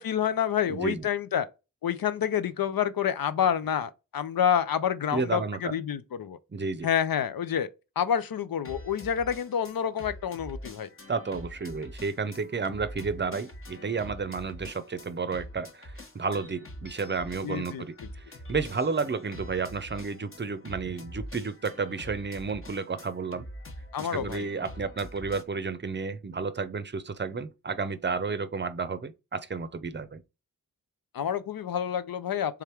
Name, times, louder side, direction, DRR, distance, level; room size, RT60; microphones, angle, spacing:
voice 1, 0.0-1.5 1.8-6.4 6.8-7.7 8.0-10.9 17.4-17.8 23.9-24.5 31.1-32.6, left 8 dB, 75° left, 0.6 m, -28 dB
voice 2, 0.7-1.1 5.1-5.7 6.5-6.9 11.1-18.2 18.5-23.5 24.0-30.2, right 4 dB, 30° right, 0.6 m, -32 dB
sound 1, 8.6-25.4, left 1 dB, 35° left, 1.1 m, -45 dB
3.5 x 3.4 x 4.4 m
cardioid pair, 45°, 36 cm